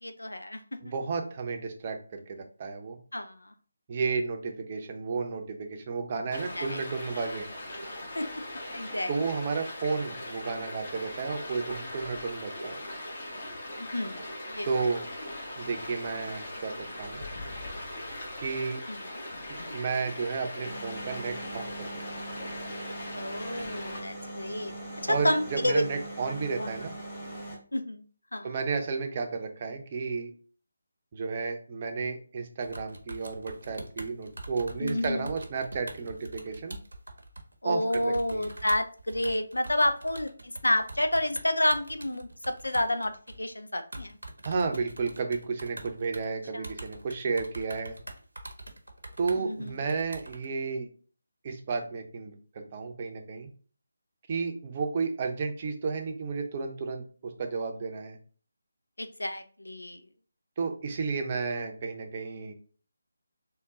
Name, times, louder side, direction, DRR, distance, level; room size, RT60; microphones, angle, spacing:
voice 1, 0.0-0.9 3.1-3.5 6.6-6.8 7.1-7.2 8.1-8.4 8.7-9.1 13.8-14.7 18.9-19.1 23.1-24.7 25.0-25.8 26.6-26.7 27.7-28.0 28.3-28.5 34.8-35.3 37.6-43.1 43.4-44.2 46.5-46.7 49.4-49.8 59.0-60.0, left 1 dB, 75° left, 8 dB, 0.5 m, -30 dB
voice 2, 0.8-3.0 3.9-7.5 9.1-12.8 14.6-15.0 15.6-17.2 18.4-18.8 19.7-22.2 25.1-26.9 28.4-30.3 31.1-36.8 37.6-38.5 44.4-48.0 49.2-50.9 51.4-53.5 54.3-58.2 60.6-62.5, right 4 dB, 30° right, 4 dB, 0.6 m, -32 dB
Stream, 6.3-24.0, left 1 dB, 40° left, 1.3 m, -40 dB
sound 1, 20.6-27.6, right 1 dB, 15° left, 1.3 m, -41 dB
sound 2, 32.6-37.5 37.9-43.5 43.9-46.3 46.6-50.4, right 2 dB, 75° right, 0.8 m, -44 dB
3.6 x 2.3 x 3.8 m, 0.41 s
figure-of-eight pair, 155°, 0 cm